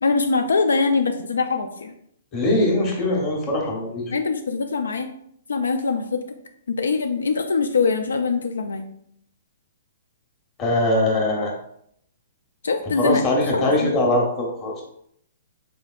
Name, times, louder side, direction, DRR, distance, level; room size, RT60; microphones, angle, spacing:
voice 1, 0.0-1.9 4.1-5.1 5.5-6.3 6.7-8.9 12.6-13.2 13.5-14.0, left 4 dB, 90° left, 6 dB, 0.3 m, -23 dB
voice 2, 2.3-4.0 10.6-11.5 13.0-14.8, left 1 dB, 30° left, -1 dB, 1.2 m, -21 dB
3.7 x 3.4 x 2.4 m, 0.71 s
hypercardioid pair, 140°, 0 cm